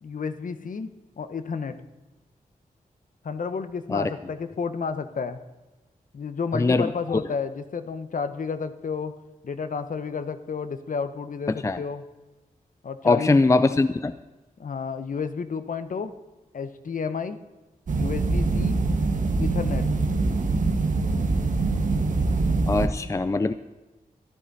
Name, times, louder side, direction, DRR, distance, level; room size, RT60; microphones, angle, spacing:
voice 1, 0.0-0.9 1.2-1.7 3.2-5.4 6.1-9.1 9.4-12.0 12.8-13.3 14.6-16.1 16.5-17.4 17.9-18.8 19.4-19.9, left 5 dB, 65° left, 10 dB, 1.0 m, -31 dB
voice 2, 6.5-7.2 11.6-11.8 13.0-14.1 22.7-23.5, left 3 dB, 20° left, 12 dB, 0.4 m, -22 dB
sound 1, 17.9-22.9, right 3 dB, 60° right, 1.4 m, -24 dB
14.5 x 12.0 x 4.1 m, 1.1 s
wide cardioid pair, 130°, 15 cm